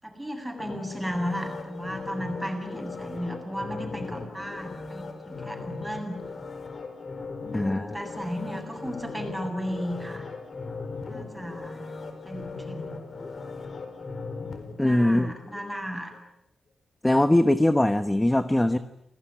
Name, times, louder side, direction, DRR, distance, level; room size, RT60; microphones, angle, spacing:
voice 1, 0.0-6.2 7.4-10.3 11.0-11.9 12.2-12.9 14.8-16.1, equal, 5° right, 3 dB, 7.9 m, -35 dB
sound 1, 0.6-15.6 16.1-16.2, left 4 dB, 45° left, 4.5 m, -38 dB
voice 2, 7.5-7.9 14.8-15.3 17.0-18.8, left 1 dB, 10° left, 11 dB, 1.1 m, -21 dB
29.0 x 19.5 x 10.0 m, 0.84 s
wide cardioid pair, 110°, 0 cm